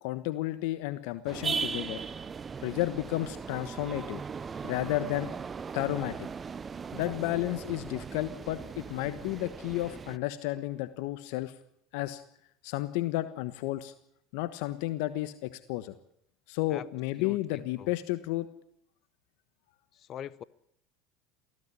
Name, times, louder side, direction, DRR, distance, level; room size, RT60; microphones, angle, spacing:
voice 1, 0.0-2.0 2.6-4.2 4.6-5.3 5.7-6.2 6.9-11.5 11.9-12.2 12.6-13.9 14.3-15.9 16.5-18.5, left 16 dB, 75° left, 1.3 m, -32 dB
sound 1, 1.3-10.2, right 5 dB, 25° right, 0.8 m, -38 dB
voice 2, 17.2-17.9 19.9-20.4, left 10 dB, 45° left, 0.9 m, -42 dB
19.5 x 15.5 x 10.0 m
supercardioid pair, 95°, 0 cm